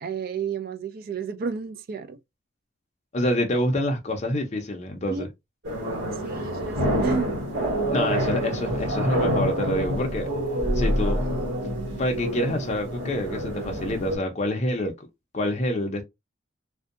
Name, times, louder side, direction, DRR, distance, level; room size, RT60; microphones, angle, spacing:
voice 1, 0.0-2.2 5.1-5.3 6.2-7.3, right 5 dB, 50° right, 0.3 m, -31 dB
voice 2, 3.1-5.3 7.9-10.3 10.7-11.2 12.0-15.1 15.3-16.0, left 1 dB, 35° left, 0.5 m, -27 dB
sound 1, 5.6-14.2, equal, 65° right, 1.4 m, -27 dB
2.6 x 2.2 x 2.4 m
head